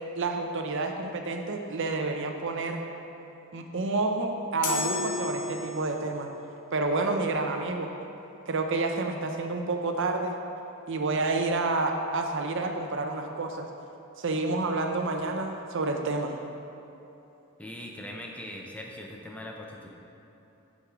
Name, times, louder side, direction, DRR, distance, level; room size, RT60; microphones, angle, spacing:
voice 1, 0.2-2.8 3.5-6.3 6.7-7.9 8.5-10.4 10.9-13.7 14.2-16.4, right 3 dB, 60° right, 4 dB, 0.7 m, -29 dB
sound 1, 4.6-6.1, left 3 dB, 90° left, 1.0 m, -32 dB
voice 2, 17.6-19.9, left 1 dB, 5° left, 0 dB, 0.8 m, -41 dB
7.4 x 6.9 x 4.9 m, 3.0 s
head